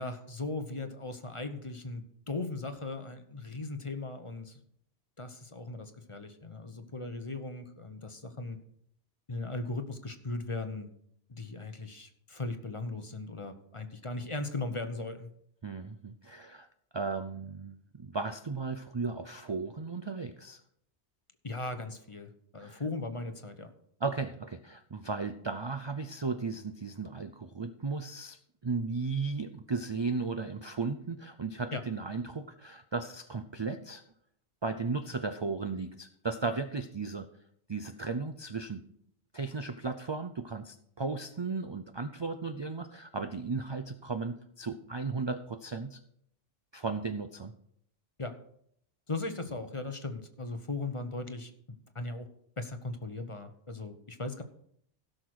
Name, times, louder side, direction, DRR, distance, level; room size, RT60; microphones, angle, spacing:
voice 1, 0.0-4.6 5.2-8.6 9.3-10.9 11.3-15.3 21.4-23.7 31.7-31.8 48.2-48.3 49.1-52.3 52.6-54.4, left 2 dB, 30° left, 8 dB, 0.9 m, -38 dB
voice 2, 15.6-16.7 16.9-20.6 22.6-22.8 24.0-34.0 34.6-37.3 37.7-38.8 39.3-46.0 46.7-47.5, right 4 dB, 40° right, 9 dB, 0.4 m, -35 dB
16.5 x 6.5 x 4.7 m, 0.69 s
omnidirectional pair, 1.2 m